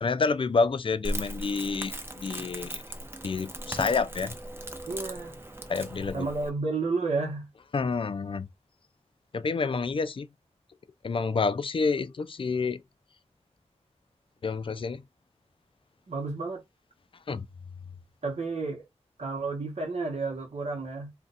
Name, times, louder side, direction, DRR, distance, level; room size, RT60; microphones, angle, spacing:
voice 1, 0.0-2.8 3.2-4.3 5.7-6.3 7.7-8.5 9.3-10.3 11.0-12.8 14.4-15.0 17.3-17.5, left 4 dB, 50° left, 0.3 m, -28 dB
Crackle, 1.0-6.5, right 1 dB, 20° right, 0.6 m, -38 dB
voice 2, 4.8-5.4 6.1-7.5 16.1-16.6 18.2-18.9 19.2-21.1, right 3 dB, 70° right, 0.9 m, -31 dB
2.5 x 2.2 x 4.0 m
wide cardioid pair, 70°, 12 cm